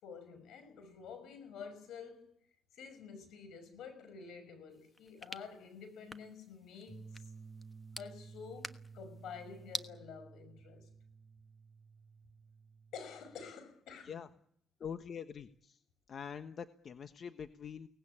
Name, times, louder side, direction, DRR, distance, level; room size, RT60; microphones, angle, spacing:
voice 1, 0.0-2.3 2.7-7.3 8.0-10.9 12.9-14.2, left 6 dB, 80° left, 5.7 m, -49 dB
sound 1, 4.7-9.9, left 2 dB, 20° left, 1.3 m, -48 dB
sound 2, 6.9-13.5, right 5 dB, 15° right, 0.9 m, -54 dB
voice 2, 14.8-15.8 16.1-17.9, left 7 dB, 50° left, 1.1 m, -44 dB
23.5 x 18.5 x 8.7 m
cardioid pair, 90°, 0 cm